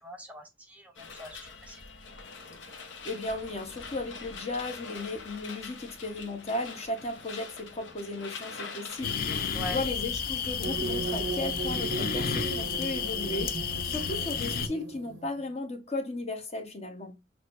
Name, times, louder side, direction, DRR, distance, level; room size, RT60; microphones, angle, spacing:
voice 1, 0.0-1.8 9.5-9.8, left 1 dB, 10° right, 0.5 m, -42 dB
sound 1, 1.0-9.6, left 4 dB, 85° left, 0.8 m, -44 dB
voice 2, 3.0-17.2, left 2 dB, 35° left, 0.8 m, -35 dB
sound 2, 9.0-14.7, left 6 dB, 50° left, 0.4 m, -31 dB
sound 3, 10.6-15.5, right 4 dB, 75° right, 0.5 m, -37 dB
6.3 x 2.6 x 2.5 m
head